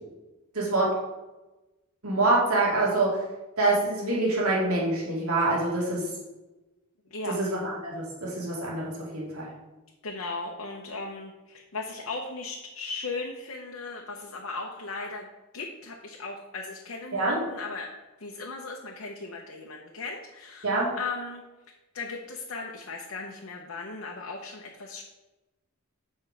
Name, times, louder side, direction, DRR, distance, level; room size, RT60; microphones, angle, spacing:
voice 1, 0.5-0.9 2.0-3.2 3.6-6.1 7.3-9.5 17.1-17.4 20.6-20.9, right 2 dB, 80° right, -5 dB, 2.3 m, -26 dB
voice 2, 10.0-15.3 15.5-17.9 18.2-21.4 21.9-25.0, left 3 dB, 70° left, 0 dB, 0.9 m, -37 dB
7.8 x 5.5 x 4.7 m, 1.1 s
head